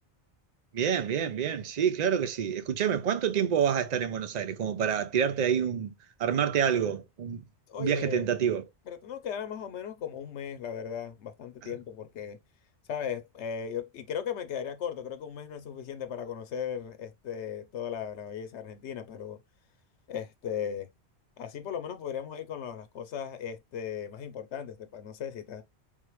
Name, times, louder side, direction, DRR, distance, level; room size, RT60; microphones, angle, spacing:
voice 1, 0.7-5.9 6.2-7.4 7.8-8.6, right 8 dB, 50° right, 0.6 m, -27 dB
voice 2, 7.7-8.3 8.9-12.4 12.9-19.4 20.1-20.9 21.4-25.6, left 8 dB, 85° left, 1.0 m, -37 dB
3.7 x 3.2 x 3.0 m
omnidirectional pair, 1.1 m